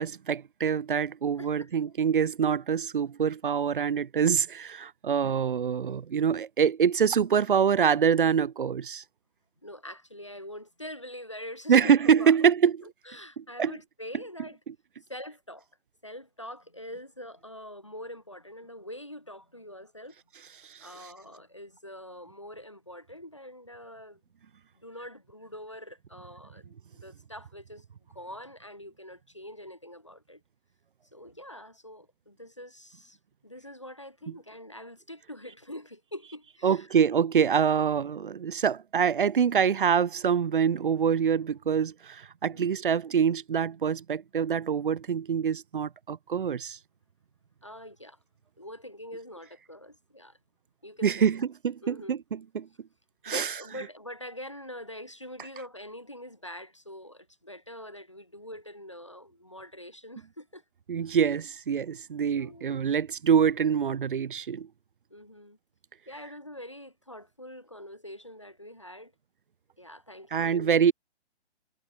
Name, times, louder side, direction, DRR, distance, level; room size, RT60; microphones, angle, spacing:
voice 1, 0.0-9.0 11.7-12.7 13.4-13.7 20.6-20.9 36.6-46.8 51.0-52.7 53.2-53.5 60.9-64.7 70.3-70.9, right 7 dB, 50° right, 0.6 m, -25 dB
voice 2, 1.4-1.7 9.6-12.5 12.8-14.6 15.1-15.7 16.0-20.2 20.8-24.2 24.7-27.8 28.1-30.4 31.1-33.2 33.4-36.9 37.9-38.0 42.5-42.8 47.6-48.2 48.6-50.4 50.8-51.3 51.8-52.2 53.3-60.6 62.3-62.9 65.1-65.6 66.1-69.1 69.8-70.9, left 1 dB, 30° left, 0.4 m, -44 dB
hypercardioid pair, 170°, 33 cm